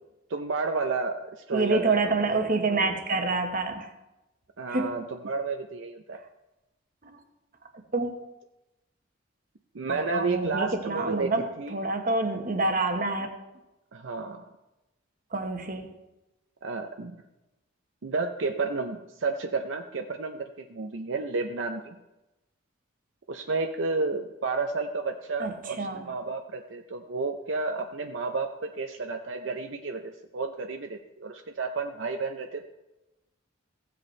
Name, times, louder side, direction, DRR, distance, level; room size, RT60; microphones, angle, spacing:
voice 1, 0.3-1.2 1.5-2.2 4.6-6.2 9.7-11.8 13.9-14.4 16.6-17.1 18.0-22.0 23.3-32.6, right 3 dB, 70° right, 5 dB, 0.6 m, -31 dB
voice 2, 1.5-3.9 4.7-5.0 7.9-8.1 9.9-11.4 11.7-13.3 15.3-15.9 25.4-26.0, right 3 dB, 45° right, 5 dB, 1.1 m, -27 dB
16.0 x 7.8 x 3.2 m, 0.98 s
head